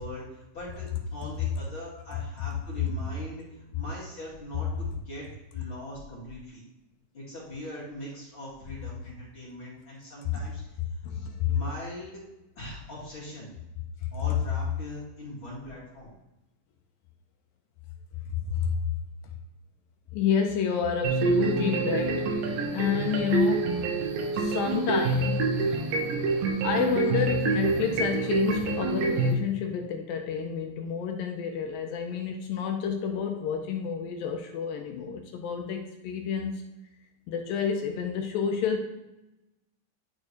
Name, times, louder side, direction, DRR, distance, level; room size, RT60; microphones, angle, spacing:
voice 1, 0.0-5.3 5.5-6.6 7.1-12.2 12.6-13.5 14.1-16.1, left 1 dB, 35° left, -8 dB, 2.6 m, -41 dB
voice 2, 1.8-2.2 11.0-11.5 18.3-18.7 20.1-22.3 22.7-23.8 24.3-25.5 26.6-36.7 37.3-38.9, left 7 dB, 80° left, 3 dB, 2.4 m, -29 dB
sound 1, 21.0-29.3, right 3 dB, 70° right, 2.5 m, -27 dB
11.5 x 4.3 x 3.2 m, 0.95 s
omnidirectional pair, 4.4 m